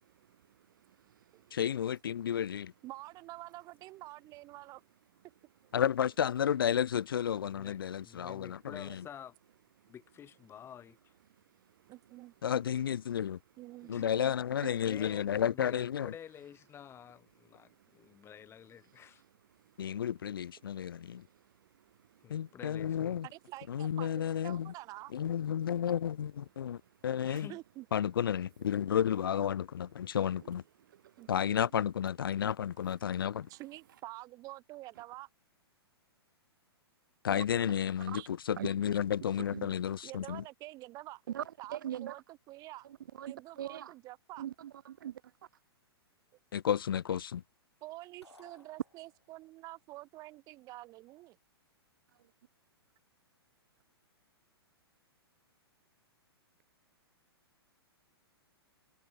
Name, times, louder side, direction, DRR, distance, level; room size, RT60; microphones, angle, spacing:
voice 1, 0.0-1.6 9.8-9.9 11.5-11.9 17.5-18.2 18.8-19.0 19.6-20.0 20.6-22.5 26.6-27.0 27.3-27.4 30.1-31.3 33.5-33.6 38.1-38.2 38.6-38.7 39.5-39.7 41.3-42.2 42.8-43.9 44.4-45.3, right 11 dB, 50° right, 0.6 m, -46 dB
voice 2, 1.5-2.7 5.7-9.0 12.4-13.4 13.9-16.1 19.8-21.2 22.3-23.3 23.7-24.7 25.1-27.5 27.9-30.6 31.3-33.5 37.2-40.4 46.5-47.4, left 9 dB, 55° left, 0.7 m, -32 dB
voice 3, 2.8-4.8 8.8-9.0 11.9-12.6 13.6-14.3 23.2-25.1 27.3-27.9 31.2-31.3 33.5-35.3 38.1-38.3 40.0-41.2 41.6-42.9 43.3-44.4 47.8-51.4, right 18 dB, 25° right, 1.6 m, -48 dB
voice 4, 7.4-9.3 9.9-11.1 13.8-14.1 14.8-19.2 22.2-23.2 27.2-27.6, left 9 dB, 20° left, 4.3 m, -50 dB
sound 1, 48.2-49.5, left 1 dB, 85° left, 5.2 m, -60 dB
figure-of-eight pair, 110°, 14 cm